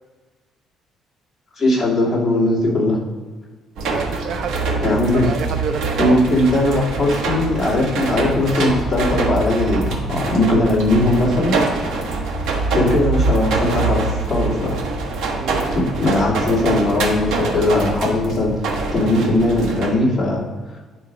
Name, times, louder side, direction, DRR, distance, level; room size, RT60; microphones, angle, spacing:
voice 1, 1.6-3.0 4.8-5.3 6.0-11.9 12.7-14.8 15.7-18.5 18.9-20.4, left 1 dB, 10° left, -8 dB, 2.7 m, -19 dB
sound 1, 3.8-19.9, right 3 dB, 80° right, 1.3 m, -24 dB
voice 2, 3.9-6.2 15.4-15.8, right 7 dB, 50° right, 9 dB, 0.4 m, -29 dB
10.5 x 4.8 x 4.7 m, 1.4 s
cardioid pair, 175°, 0 cm